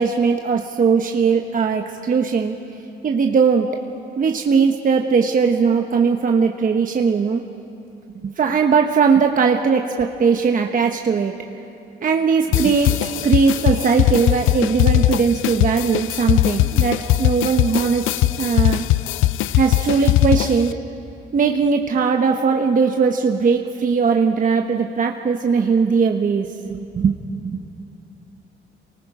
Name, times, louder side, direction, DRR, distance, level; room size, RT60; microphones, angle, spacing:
voice 1, 0.0-2.5 3.0-3.7 4.2-7.4 8.2-11.3 12.0-12.9 13.2-18.0 18.4-18.8 19.5-20.8 21.3-27.7, right 5 dB, 45° right, 3 dB, 1.1 m, -19 dB
sound 1, 12.5-20.7, left 15 dB, 85° left, 0.4 m, -20 dB
28.0 x 19.5 x 5.0 m, 2.8 s
cardioid pair, 90°, 20 cm